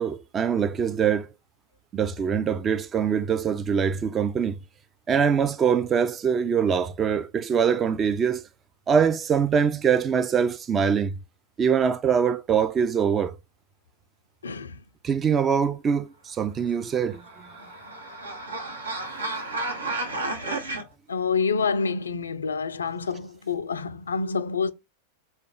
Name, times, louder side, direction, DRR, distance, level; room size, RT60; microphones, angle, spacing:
voice 1, 0.0-1.3 1.9-4.6 5.1-8.5 8.9-11.2 11.6-13.4 15.0-17.6, right 7 dB, 25° right, 0.3 m, -23 dB
voice 2, 14.4-14.8 21.1-24.7, left 5 dB, 70° left, 0.3 m, -27 dB
sound 1, 16.9-20.8, right 2 dB, 80° right, 0.8 m, -32 dB
3.4 x 2.2 x 3.7 m
figure-of-eight pair, 90°, 0 cm